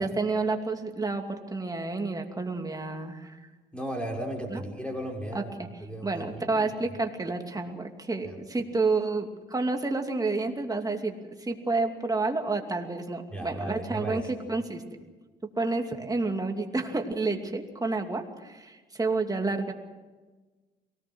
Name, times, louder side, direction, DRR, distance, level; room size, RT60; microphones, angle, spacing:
voice 1, 0.0-3.4 4.5-4.6 5.3-5.7 6.0-14.2 14.5-14.8 15.6-19.7, right 3 dB, 20° right, 3 dB, 2.7 m, -30 dB
voice 2, 3.7-5.5 5.8-6.7 8.2-8.4 13.3-14.3, right 1 dB, 5° left, 0 dB, 5.9 m, -35 dB
23.0 x 18.5 x 6.3 m, 1.3 s
cardioid pair, 90°, 20 cm